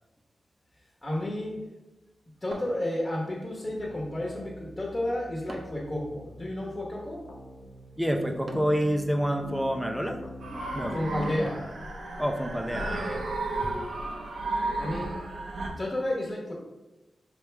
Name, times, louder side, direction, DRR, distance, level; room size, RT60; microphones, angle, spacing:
voice 1, 1.0-1.6 2.4-7.3 10.9-11.7 14.8-15.2 15.8-16.5, left 1 dB, 30° left, -3 dB, 1.2 m, -31 dB
sound 1, 2.5-3.4 5.5-5.9 8.5-8.9 11.5-11.9, right 2 dB, 45° right, 0.7 m, -44 dB
sound 2, 3.6-11.4, left 1 dB, 75° left, 0.6 m, -44 dB
voice 2, 8.0-10.2 10.7-11.0 12.2-13.2 13.6-13.8, equal, 5° right, 3 dB, 0.5 m, -28 dB
sound 3, 10.4-15.7, right 2 dB, 85° right, 0.7 m, -33 dB
4.6 x 3.4 x 3.3 m, 1.0 s
cardioid pair, 55°, 0 cm